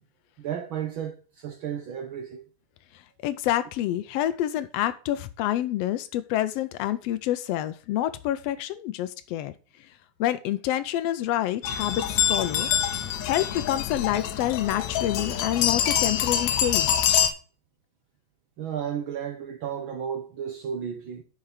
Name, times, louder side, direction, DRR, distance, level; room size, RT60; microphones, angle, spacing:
voice 1, 0.4-2.4 18.6-21.2, right 8 dB, 85° right, 1.1 m, -33 dB
voice 2, 3.2-9.5 10.2-12.7 13.2-17.0, left 13 dB, 90° left, 1.4 m, -27 dB
sound 1, 11.6-17.3, left 9 dB, 75° left, 2.2 m, -25 dB
6.5 x 6.0 x 7.1 m
omnidirectional pair, 3.5 m